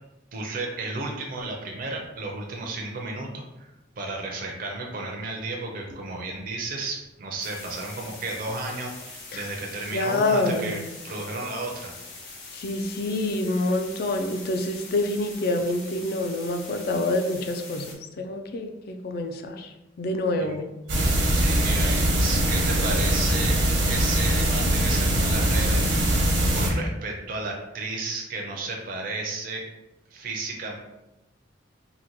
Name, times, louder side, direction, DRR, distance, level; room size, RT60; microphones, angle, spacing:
voice 1, 0.3-11.9 20.4-20.6 21.3-23.6 23.8-26.3 26.5-29.6 30.1-30.8, right 3 dB, 50° right, 0 dB, 0.5 m, -33 dB
sound 1, 7.4-17.9, left 3 dB, 80° left, 0.8 m, -43 dB
voice 2, 9.9-10.8 12.5-17.9 18.2-19.7 20.0-20.6, left 2 dB, 50° left, 5 dB, 0.4 m, -27 dB
sound 2, 20.9-26.7, right 1 dB, 85° right, 0.9 m, -22 dB
3.8 x 2.1 x 2.9 m, 0.98 s
head